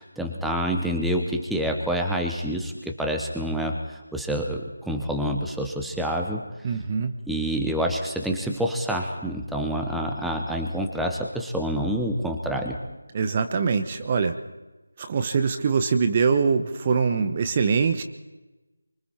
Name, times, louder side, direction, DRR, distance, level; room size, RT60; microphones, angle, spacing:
voice 1, 0.0-6.5 7.3-12.8, equal, ahead, 1 dB, 1.3 m, -27 dB
voice 2, 6.6-7.1 13.1-14.4 15.0-18.0, right 5 dB, 25° right, 8 dB, 1.1 m, -23 dB
26.5 x 25.0 x 4.4 m, 1.1 s
figure-of-eight pair, 165°, 0 cm